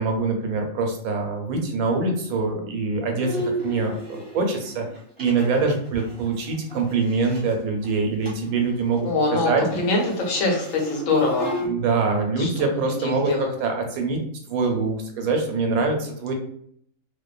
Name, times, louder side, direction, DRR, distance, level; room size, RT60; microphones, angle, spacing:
voice 1, 0.0-4.9 5.2-9.6 11.6-14.2 14.5-16.3, right 4 dB, 90° right, 3 dB, 1.1 m, -24 dB
Bowed string instrument, 3.2-7.5 7.8-7.9 8.2-8.5 8.8-11.7, equal, 5° right, 1.1 m, -34 dB
voice 2, 9.0-11.5 12.4-12.5 13.0-13.5, left 2 dB, 70° left, -1 dB, 1.1 m, -23 dB
2.6 x 2.1 x 2.3 m, 0.65 s
omnidirectional pair, 1.5 m